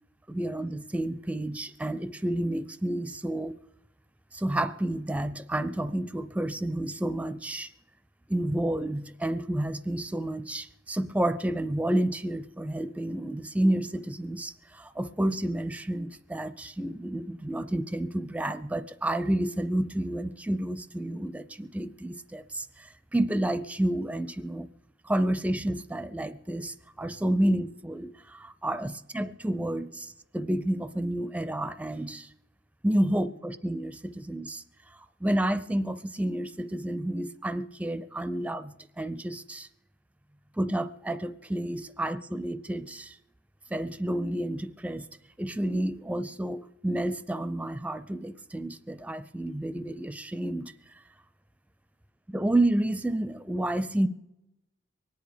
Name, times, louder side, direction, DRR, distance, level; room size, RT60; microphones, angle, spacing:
voice 1, 0.3-3.6 4.3-7.7 8.3-24.7 25.0-32.3 32.8-34.6 35.2-39.7 40.6-43.2 43.7-45.1 45.4-50.7 52.3-54.1, right 1 dB, 5° right, 14 dB, 0.4 m, -30 dB
24.0 x 10.0 x 5.1 m, 0.94 s
head